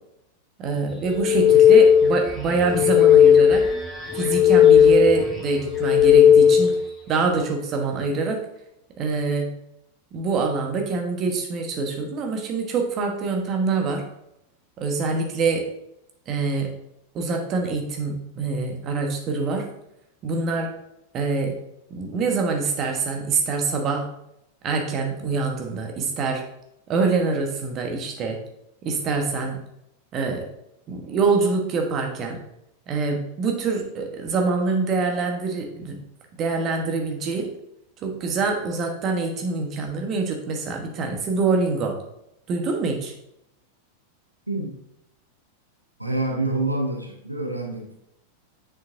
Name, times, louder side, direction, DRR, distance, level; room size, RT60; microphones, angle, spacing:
voice 1, 0.6-3.7 4.1-6.7 7.1-8.4 9.0-9.5 10.1-14.0 14.8-15.7 16.3-16.7 17.1-19.7 20.2-20.7 21.1-21.6 21.9-24.1 24.6-26.4 26.9-28.4 28.8-29.6 30.1-30.5 30.9-32.4 32.9-36.0 36.4-37.5 38.0-42.0 42.5-43.1, right 4 dB, 35° right, 3 dB, 1.3 m, -25 dB
sound 1, 0.8-7.4, equal, 10° left, 1.4 m, -40 dB
sound 2, 1.1-2.3 2.6-3.8 4.1-5.3 5.7-6.8, left 9 dB, 40° left, 0.4 m, -15 dB
voice 2, 44.5-44.8 46.0-47.9, right 2 dB, 85° right, 2 dB, 0.8 m, -27 dB
7.2 x 6.4 x 2.7 m, 0.80 s
figure-of-eight pair, 90°, 0 cm